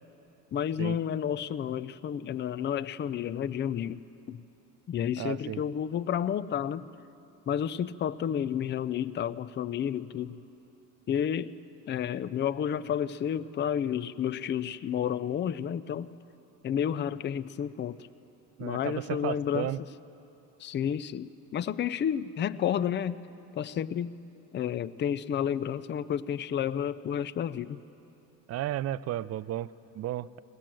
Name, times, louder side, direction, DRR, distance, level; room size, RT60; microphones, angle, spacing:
voice 1, 0.5-4.4 4.9-6.9 7.5-10.4 11.1-11.6 11.9-16.1 16.6-18.0 18.6-19.9 20.6-23.2 23.5-24.1 24.5-27.8, left 9 dB, 30° left, 15 dB, 0.5 m, -31 dB
voice 2, 5.2-5.6 18.6-19.8 28.5-30.4, right 13 dB, 45° right, 18 dB, 0.5 m, -34 dB
22.0 x 18.0 x 7.6 m, 2.9 s
supercardioid pair, 105°, 36 cm